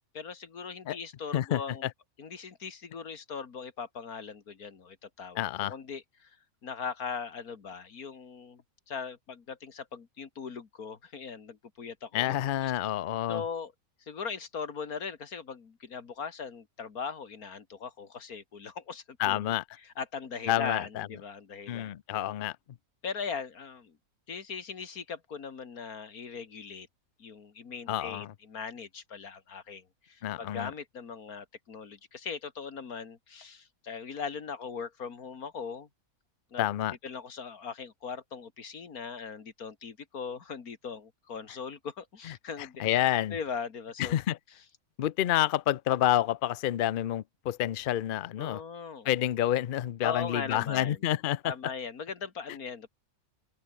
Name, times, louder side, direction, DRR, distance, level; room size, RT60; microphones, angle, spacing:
voice 1, 0.1-1.9 2.2-5.4 5.7-6.3 6.6-8.6 8.9-12.4 12.6-12.7 13.3-13.7 14.1-19.4 20.0-21.9 23.0-23.9 24.3-26.9 27.2-35.9 36.5-36.6 37.0-42.8 43.3-44.2 48.4-49.1 50.0-51.0 51.4-52.9, left 6 dB, 80° left, 2.4 m, -39 dB
voice 2, 1.3-1.9 5.3-5.7 12.1-13.4 19.2-19.6 20.5-21.1 21.7-22.6 27.9-28.3 30.2-30.7 36.6-37.0 42.2-43.4 44.0-44.4 45.0-48.6 49.0-51.5, left 12 dB, 65° left, 0.5 m, -29 dB
open air
omnidirectional pair, 1.5 m